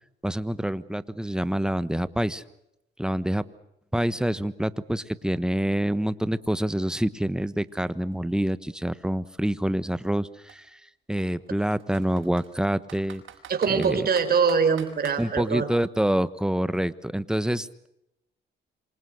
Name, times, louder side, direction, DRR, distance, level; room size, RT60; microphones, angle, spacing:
voice 1, 0.2-2.4 3.0-3.4 3.9-10.6 11.1-13.2 13.7-14.0 15.2-17.9, right 1 dB, 5° right, 15 dB, 1.3 m, -26 dB
Computer keyboard, 6.9-7.0 7.3-9.3 10.0-10.2 10.5-10.6 11.2-12.5 12.9-15.2, right 10 dB, 75° right, 5.6 m, -46 dB
voice 2, 13.5-15.7, right 6 dB, 50° right, 8 dB, 4.9 m, -23 dB
27.0 x 25.0 x 6.4 m, 0.82 s
cardioid pair, 90°, 20 cm